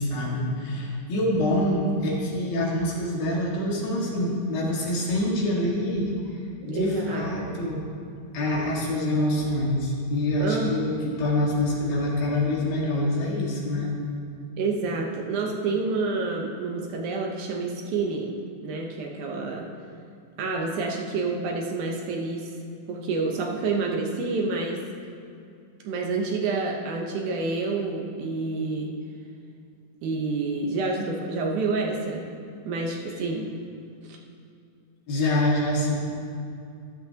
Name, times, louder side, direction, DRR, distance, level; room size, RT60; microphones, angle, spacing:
voice 1, 0.0-6.1 6.7-7.8 8.3-13.9 35.1-36.0, left 1 dB, 85° left, -3 dB, 3.7 m, -25 dB
voice 2, 6.6-7.6 10.4-10.7 11.0-11.1 14.6-19.7 20.4-22.6 22.9-24.9 25.8-29.0 30.0-32.3 32.7-33.5 34.0-34.2, right 3 dB, 70° right, 0 dB, 2.3 m, -28 dB
13.5 x 12.5 x 2.8 m, 2.5 s
omnidirectional pair, 4.0 m